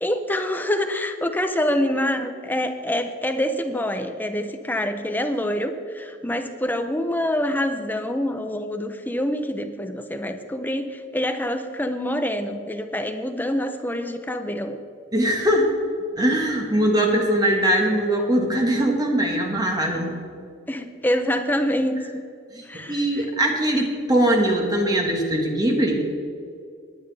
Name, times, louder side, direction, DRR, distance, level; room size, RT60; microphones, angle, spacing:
voice 1, 0.0-14.8 19.9-20.0 20.7-22.2 22.7-23.2, left 1 dB, 10° left, 7 dB, 0.8 m, -26 dB
voice 2, 15.1-15.7 16.2-20.1 22.5-26.1, right 1 dB, 20° right, 1 dB, 1.6 m, -21 dB
18.5 x 10.0 x 3.5 m, 2.4 s
head